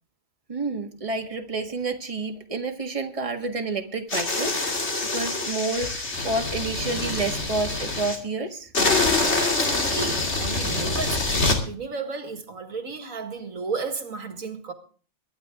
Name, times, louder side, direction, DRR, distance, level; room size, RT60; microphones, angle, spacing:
voice 1, 0.5-8.7, right 3 dB, 25° right, 1.8 m, -29 dB
sound 1, 4.1-8.2 8.7-11.6, left 2 dB, 55° left, 3.0 m, -25 dB
voice 2, 9.4-14.7, right 4 dB, 80° right, 2.3 m, -34 dB
23.0 x 10.5 x 3.6 m
omnidirectional pair, 1.4 m